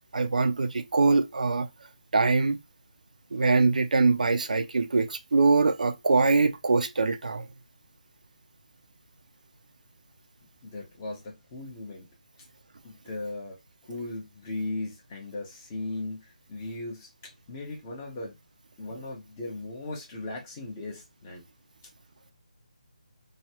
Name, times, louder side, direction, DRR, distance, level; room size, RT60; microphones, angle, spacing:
voice 1, 0.1-1.7 2.1-2.6 3.3-7.4, right 3 dB, 75° right, 0.5 m, -23 dB
voice 2, 10.6-12.1 12.8-13.6 13.9-17.1 17.5-18.4 18.8-21.4, left 2 dB, 20° left, 1.0 m, -37 dB
3.1 x 2.3 x 2.9 m
figure-of-eight pair, 165°, 4 cm